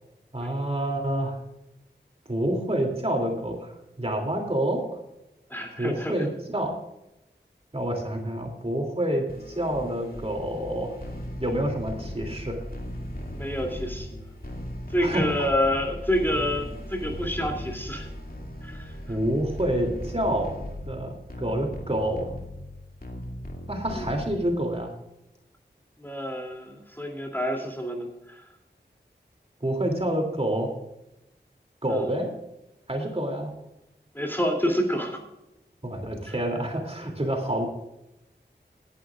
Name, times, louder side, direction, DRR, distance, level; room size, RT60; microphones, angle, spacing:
voice 1, 0.3-1.4 2.3-3.7 4.0-5.0 5.8-6.7 7.7-10.9 11.4-12.6 15.0-15.5 19.1-20.5 20.8-22.3 23.7-24.9 29.6-30.7 31.8-32.3 32.9-33.5 35.8-37.7, right 1 dB, 35° right, 2 dB, 2.8 m, -28 dB
voice 2, 5.5-6.1 13.3-14.2 14.9-18.1 18.6-18.9 23.9-24.1 26.0-28.4 31.9-32.1 34.1-35.2 36.3-36.4, equal, 10° left, 2 dB, 2.8 m, -28 dB
sound 1, 9.3-24.7, left 1 dB, 55° left, 2.4 m, -38 dB
19.5 x 11.5 x 2.4 m, 0.88 s
wide cardioid pair, 60°, 19 cm